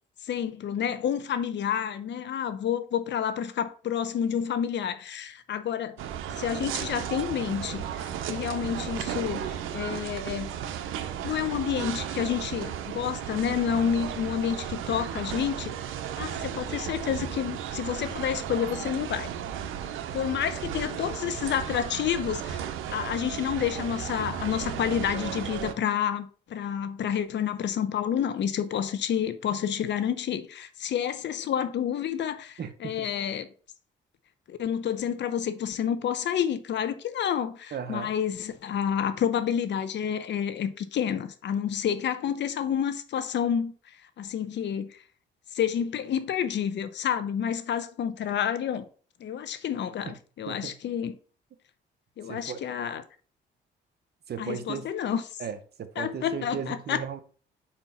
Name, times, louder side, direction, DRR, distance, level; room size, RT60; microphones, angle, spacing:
voice 1, 0.2-6.0 6.4-10.5 11.2-15.8 16.2-19.3 20.1-33.5 34.5-43.7 44.2-45.0 45.5-48.8 49.2-51.1 52.2-53.0 54.4-55.2 56.0-57.0, left 8 dB, 65° left, 0.8 m, -29 dB
sound 1, 6.0-25.7, right 9 dB, 85° right, 0.7 m, -34 dB
voice 2, 32.6-33.1 37.7-38.1 50.1-50.2 50.5-50.8 52.2-52.6 54.3-54.9 55.4-57.2, right 7 dB, 55° right, 1.0 m, -36 dB
5.2 x 4.4 x 5.8 m
cardioid pair, 90°, 20 cm